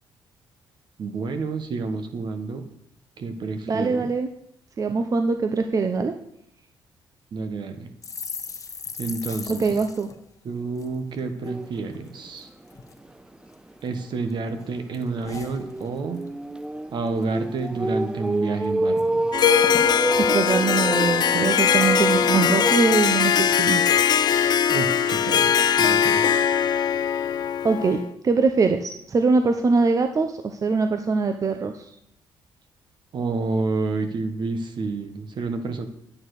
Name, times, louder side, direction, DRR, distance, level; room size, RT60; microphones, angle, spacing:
voice 1, 1.0-2.6 3.2-4.1 7.3-7.9 9.0-9.6 10.4-12.5 13.8-16.2 16.9-19.3 24.7-25.5 25.8-26.3 33.1-35.9, right 3 dB, 60° right, 8 dB, 1.3 m, -29 dB
voice 2, 3.7-4.3 4.8-6.1 9.5-10.1 20.2-23.8 24.3-24.5 27.6-28.0 28.2-31.9, right 4 dB, 40° right, 7 dB, 0.8 m, -22 dB
sound 1, 8.0-11.6 11.9-12.1 12.4-13.0 13.5-14.3 14.6-16.3 16.6-16.8 17.1-17.6 18.0-18.1 18.4-19.1 19.3-19.4 19.6-21.5 22.0-22.3, left 4 dB, 40° left, 1.2 m, -39 dB
sound 2, 11.5-11.8 12.2-12.3 12.7-12.8 14.9-22.9, right 1 dB, 10° right, 0.4 m, -27 dB
Harp, 19.3-28.1, left 8 dB, 55° left, 0.6 m, -21 dB
9.3 x 8.7 x 4.9 m, 0.74 s
cardioid pair, 75°, 9 cm